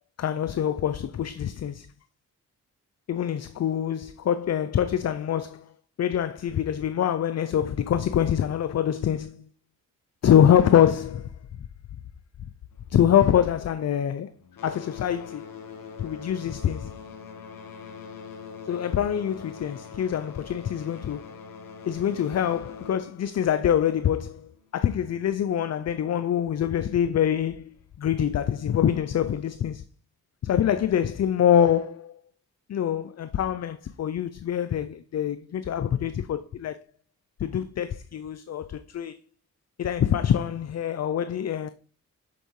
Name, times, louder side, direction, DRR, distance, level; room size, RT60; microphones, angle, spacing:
voice 1, 0.2-1.9 3.1-5.7 6.0-9.4 10.2-11.3 12.9-14.3 14.6-15.4 16.0-16.9 18.7-21.3 21.9-29.8 30.4-32.1 32.7-36.8 37.4-39.2 39.8-41.7, left 9 dB, 45° left, 0.5 m, -25 dB
sound 1, 12.7-14.1 14.4-24.7 25.5-25.6 26.3-26.4 27.0-27.1, left 6 dB, 65° left, 1.3 m, -43 dB
7.7 x 4.4 x 3.1 m
supercardioid pair, 40°, 36 cm